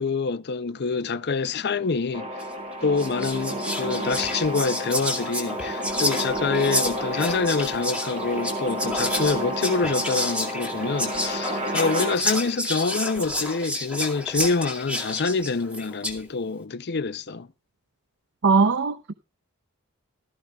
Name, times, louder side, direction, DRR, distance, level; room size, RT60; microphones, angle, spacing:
voice 1, 0.0-2.3 2.8-17.5, left 4 dB, 50° left, 0.6 m, -26 dB
sound 1, 2.1-12.1, equal, 30° right, 1.7 m, -31 dB
Whispering, 2.4-2.6 3.0-16.2, left 1 dB, 5° right, 2.4 m, -30 dB
voice 2, 18.4-19.1, right 4 dB, 55° right, 0.6 m, -20 dB
16.5 x 13.0 x 2.4 m
head